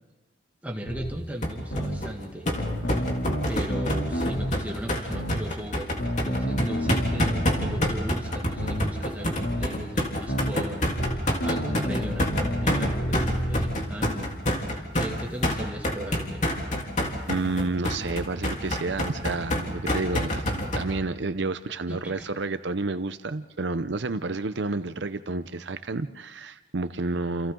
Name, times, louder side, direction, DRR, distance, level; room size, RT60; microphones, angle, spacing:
voice 1, 0.6-2.5 2.9-3.1 3.5-14.4 14.6-16.4 21.9-22.3, equal, 10° right, 0 dB, 2.1 m, -37 dB
sound 1, 0.9-1.1 1.7-2.0 2.6-4.5 5.1-5.4 6.0-8.0 8.6-8.8 9.4-9.7 10.3-10.5 11.0-13.8, equal, 80° left, 2.9 m, -29 dB
sound 2, 1.4-20.8, left 1 dB, 40° left, 3.5 m, -27 dB
voice 2, 17.3-27.5, right 3 dB, 70° right, 11 dB, 0.7 m, -30 dB
29.0 x 29.0 x 3.8 m, 1.1 s
head